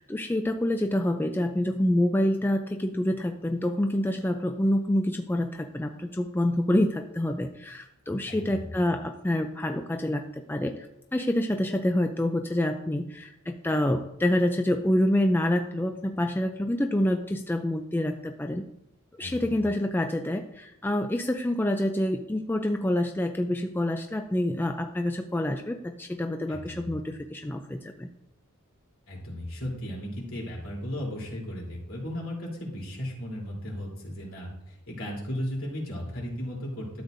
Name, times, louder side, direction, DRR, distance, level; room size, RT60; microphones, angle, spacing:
voice 1, 0.0-10.9 11.1-18.7 19.2-28.1, left 1 dB, 10° left, 5 dB, 0.4 m, -27 dB
voice 2, 8.3-8.7 19.2-19.6 26.5-26.9 29.1-37.0, equal, 65° left, -3 dB, 3.4 m, -36 dB
12.5 x 7.9 x 2.6 m, 0.86 s
head